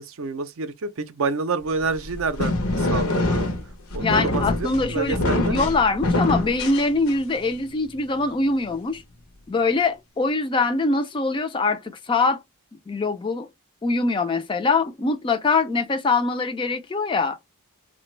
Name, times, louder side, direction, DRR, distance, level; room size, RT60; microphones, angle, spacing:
voice 1, 0.0-3.5 3.9-5.6, right 4 dB, 60° right, 0.4 m, -28 dB
sound 1, 1.8-7.4, left 2 dB, 70° left, 0.6 m, -25 dB
voice 2, 4.0-9.0 9.5-12.4 12.9-13.5 13.8-17.4, left 3 dB, 20° left, 0.3 m, -23 dB
3.2 x 2.1 x 3.1 m
head